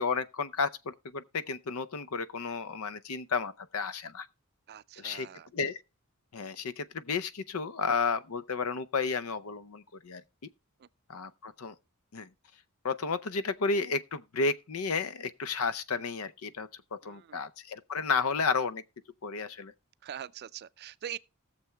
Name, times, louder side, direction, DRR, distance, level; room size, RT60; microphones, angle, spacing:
voice 1, 0.0-4.3 5.0-5.3 5.5-5.8 6.3-10.2 11.1-11.7 12.1-12.3 12.8-16.7 17.0-18.8 19.2-19.7, left 4 dB, 75° left, 0.6 m, -32 dB
voice 2, 4.7-5.5 17.0-17.4 20.0-21.2, right 10 dB, 50° right, 0.4 m, -43 dB
19.0 x 6.9 x 2.2 m
head